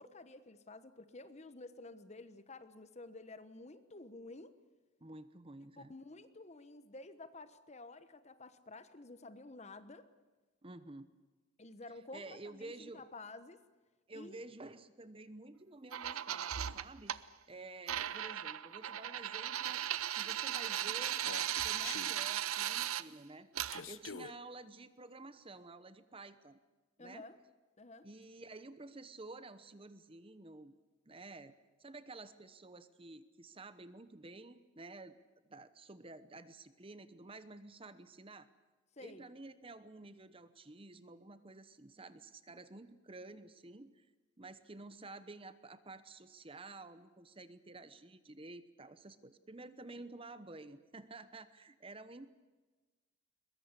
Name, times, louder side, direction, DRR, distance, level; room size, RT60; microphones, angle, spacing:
voice 1, 0.0-4.5 5.8-10.1 11.6-13.6 14.1-14.4 27.0-27.4 27.8-28.1 39.0-39.3 49.9-50.0, left 2 dB, 30° left, 12 dB, 1.2 m, -51 dB
voice 2, 5.0-5.9 10.6-11.1 12.1-13.1 14.1-19.8 20.1-21.2 21.6-23.5 23.8-26.6 27.0-27.2 28.0-30.7 31.0-31.5 31.8-35.2 35.5-38.5 39.0-44.1 44.4-52.3, right 2 dB, 25° right, 13 dB, 0.9 m, -51 dB
sound 1, 15.9-17.2 17.9-23.0 23.5-23.8, right 11 dB, 90° right, 0.7 m, -37 dB
Human voice, 21.1-22.1 23.7-24.3, left 6 dB, 70° left, 0.8 m, -46 dB
22.5 x 21.5 x 8.3 m, 1.3 s
head